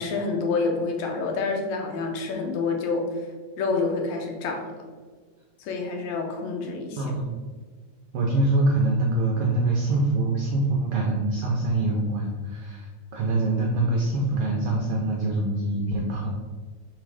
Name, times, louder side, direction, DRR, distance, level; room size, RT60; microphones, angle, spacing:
voice 1, 0.0-3.2 3.6-4.8 5.6-7.0, left 4 dB, 75° left, 2 dB, 1.9 m, -28 dB
voice 2, 7.0-7.4 8.1-16.3, right 2 dB, 75° right, -1 dB, 1.3 m, -24 dB
5.1 x 4.1 x 4.8 m, 1.5 s
omnidirectional pair, 3.5 m